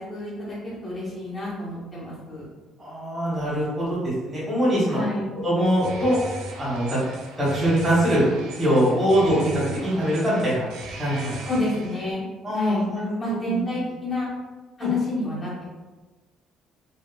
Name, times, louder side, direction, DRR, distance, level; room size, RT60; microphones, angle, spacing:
voice 1, 0.0-2.4 4.9-5.3 11.5-12.2 12.5-12.9 13.2-14.3 14.8-15.8, left 1 dB, 15° left, -8 dB, 0.7 m, -29 dB
voice 2, 2.8-5.0 5.4-6.2 6.6-7.0 7.4-8.2 8.6-10.7 11.0-11.4 12.4-13.1 13.4-13.6 14.8-14.9, equal, 10° right, -9 dB, 1.2 m, -23 dB
sound 1, 5.6-12.1, right 2 dB, 85° right, 0.4 m, -38 dB
3.2 x 2.0 x 2.2 m, 1.3 s
cardioid pair, 165°, 0 cm